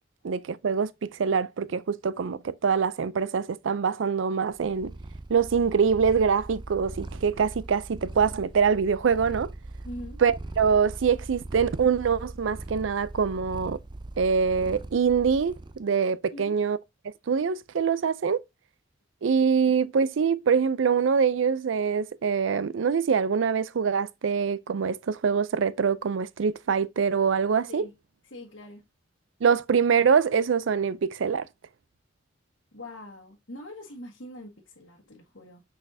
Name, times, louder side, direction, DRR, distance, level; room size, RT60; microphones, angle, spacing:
voice 1, 0.2-4.9 5.3-9.5 10.2-13.8 14.2-16.8 17.3-18.4 19.2-27.8 29.4-31.5, right 6 dB, 85° right, 0.5 m, -24 dB
Purr, 4.5-15.8, right 2 dB, 25° right, 0.5 m, -40 dB
voice 2, 9.8-10.2 16.3-16.6 27.7-27.9 28.2-28.8 32.7-35.6, left 1 dB, 90° left, 1.5 m, -43 dB
6.2 x 5.6 x 2.7 m
head